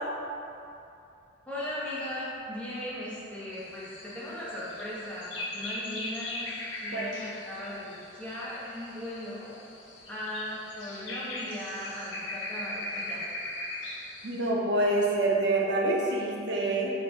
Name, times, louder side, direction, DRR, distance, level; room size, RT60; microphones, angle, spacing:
voice 1, 1.5-6.5 6.8-9.5 10.1-13.2, left 1 dB, 5° left, -8 dB, 0.7 m, -38 dB
sound 1, 3.5-14.5, left 2 dB, 65° left, 0.5 m, -39 dB
voice 2, 14.2-16.9, right 2 dB, 60° right, -2 dB, 0.6 m, -26 dB
3.9 x 2.5 x 4.6 m, 2.7 s
head